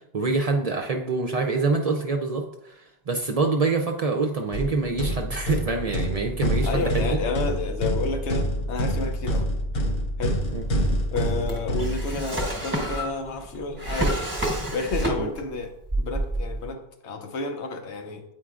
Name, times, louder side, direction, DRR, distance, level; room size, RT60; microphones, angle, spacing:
voice 1, 0.1-7.2 10.5-10.7 15.2-15.3, right 3 dB, 50° right, 0.5 m, -26 dB
sound 1, 4.5-12.5, equal, 60° left, 1.0 m, -27 dB
voice 2, 6.6-9.6 10.2-10.4 11.1-14.2 14.7-18.2, left 3 dB, 90° left, 1.1 m, -31 dB
Drawer open or close, 10.4-15.6 15.9-16.7, right 1 dB, 10° right, 1.0 m, -28 dB
8.7 x 4.4 x 2.4 m
omnidirectional pair, 1.1 m